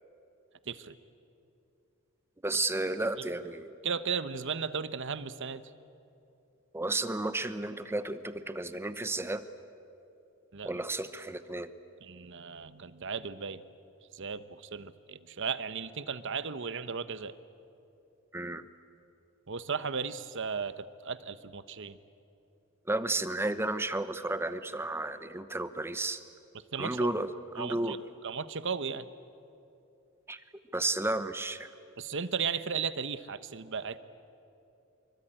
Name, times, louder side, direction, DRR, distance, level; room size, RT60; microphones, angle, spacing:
voice 1, 0.7-1.0 3.8-5.6 10.5-10.7 12.0-13.6 14.1-17.3 19.5-22.0 26.7-27.1 27.6-28.0 28.2-29.1 32.0-34.0, right 6 dB, 60° right, 13 dB, 0.9 m, -35 dB
voice 2, 2.4-3.7 6.7-9.4 10.6-11.7 18.3-18.7 22.9-26.2 26.8-27.3 27.5-28.0 30.3-30.4 30.7-31.7, right 2 dB, 10° right, 11 dB, 0.9 m, -32 dB
25.5 x 23.5 x 8.9 m, 2.8 s
head